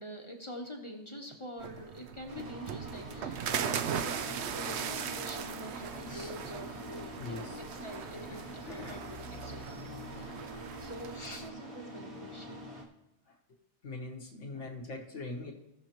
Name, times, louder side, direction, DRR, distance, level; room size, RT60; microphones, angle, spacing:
voice 1, 0.0-10.4 10.8-12.8 14.5-14.8, equal, 30° left, 2 dB, 0.9 m, -46 dB
sound 1, 1.6-11.5, right 8 dB, 75° right, 0.8 m, -39 dB
sound 2, 2.3-12.8, right 1 dB, 30° right, 1.1 m, -45 dB
sound 3, 3.5-11.0, left 3 dB, 65° left, 1.1 m, -53 dB
voice 2, 6.1-7.6 8.7-9.0 10.1-10.8 11.1-11.4 13.3-13.6 13.8-15.5, left 2 dB, 85° left, 0 dB, 1.7 m, -44 dB
17.0 x 6.4 x 3.0 m, 0.93 s
omnidirectional pair, 1.2 m